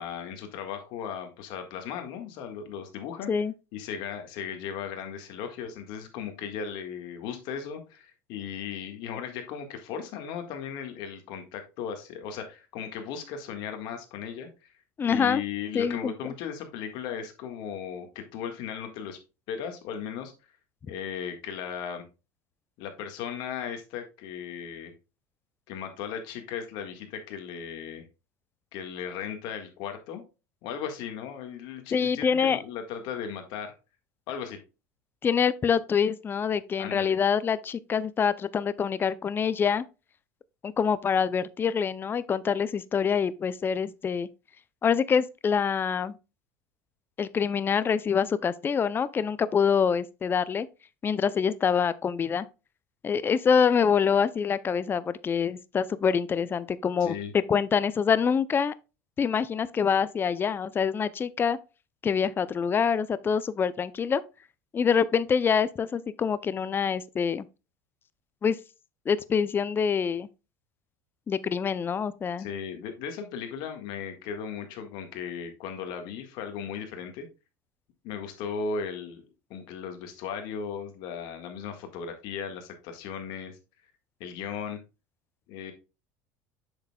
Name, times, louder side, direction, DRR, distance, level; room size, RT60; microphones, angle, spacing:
voice 1, 0.0-3.3 3.7-14.7 15.0-19.2 19.5-20.3 20.9-22.0 22.8-24.9 25.7-28.0 28.7-30.2 30.6-33.7 34.3-34.6 36.8-37.2 57.0-57.3 72.4-77.3 78.0-83.6 84.2-84.8 85.5-85.7, left 7 dB, 65° left, 1.7 m, -36 dB
voice 2, 15.0-15.4 15.7-16.1 31.9-32.6 35.2-39.8 40.6-44.3 44.8-46.1 47.2-50.7 51.0-52.4 53.0-57.1 57.5-58.7 59.2-61.6 62.0-64.2 64.7-67.4 68.4-68.6 69.1-70.3 71.3-72.5, left 6 dB, 25° left, 0.5 m, -25 dB
7.7 x 6.6 x 2.3 m
supercardioid pair, 95°, 8 cm